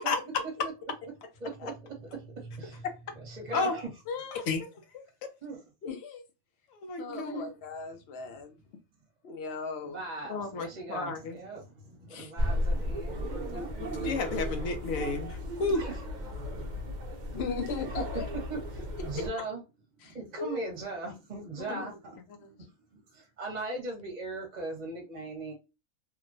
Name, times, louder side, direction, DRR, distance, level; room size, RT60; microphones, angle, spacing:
voice 1, 1.4-1.7 2.2-2.9 3.3-3.9 5.4-5.6 7.1-7.5 9.8-13.7 15.7-16.0 18.0-18.2 18.5-19.6 20.0-22.2 22.7-25.5, right 3 dB, 35° right, 0.9 m, -39 dB
voice 2, 4.1-4.7 5.8-6.2 7.0-8.6 9.2-10.0 13.5-14.1 17.3-18.3 19.1-19.2 20.0-20.7 21.6-21.9 22.4-22.5, left 5 dB, 60° left, 0.8 m, -38 dB
voice 3, 6.8-7.4 10.3-11.4 12.1-12.3 14.0-15.8 21.7-21.8, left 4 dB, 80° left, 1.0 m, -31 dB
sound 1, 12.4-19.3, equal, 55° right, 0.5 m, -34 dB
2.9 x 2.2 x 2.5 m
omnidirectional pair, 1.4 m